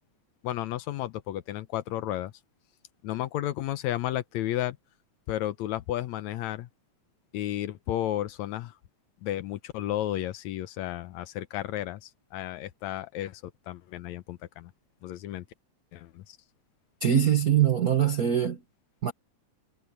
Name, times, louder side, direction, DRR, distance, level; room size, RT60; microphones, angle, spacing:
voice 1, 0.4-2.3 3.0-4.8 5.3-6.7 7.3-8.7 9.2-13.4 13.7-14.7 15.0-15.5 15.9-16.4, left 13 dB, 75° left, 1.9 m, -32 dB
voice 2, 17.0-18.6 19.0-19.1, right 9 dB, 55° right, 0.9 m, -23 dB
omnidirectional pair, 3.5 m